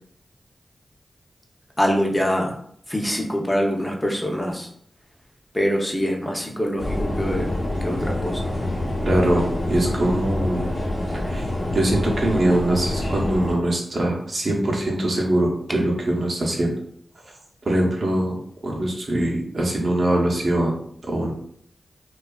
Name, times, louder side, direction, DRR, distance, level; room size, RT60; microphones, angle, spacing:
voice 1, 1.8-2.5 2.9-4.7 5.5-7.5 7.8-8.5, equal, 15° left, 0 dB, 0.6 m, -24 dB
sound 1, 6.8-13.5, left 1 dB, 60° left, 0.8 m, -26 dB
voice 2, 9.0-10.6 11.1-11.5 11.7-16.7 17.6-20.7 21.1-21.3, right 1 dB, 60° right, -1 dB, 0.7 m, -22 dB
2.6 x 2.3 x 2.3 m, 0.65 s
cardioid pair, 50°, 0 cm